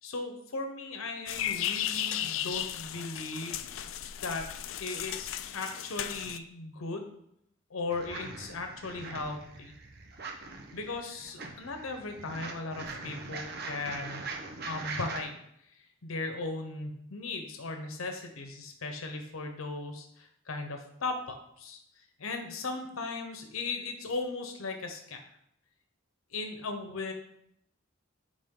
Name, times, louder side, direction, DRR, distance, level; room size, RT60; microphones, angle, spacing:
voice 1, 0.0-3.6 4.2-4.5 4.8-7.1 7.7-9.7 10.7-14.2 14.6-15.3 15.7-25.2 26.3-27.1, left 3 dB, 90° left, 5 dB, 0.9 m, -37 dB
sound 1, 1.3-6.4, left 11 dB, 70° left, 0.4 m, -35 dB
sound 2, 7.9-15.2, right 3 dB, 50° right, 0.9 m, -42 dB
9.0 x 3.7 x 3.8 m, 0.73 s
head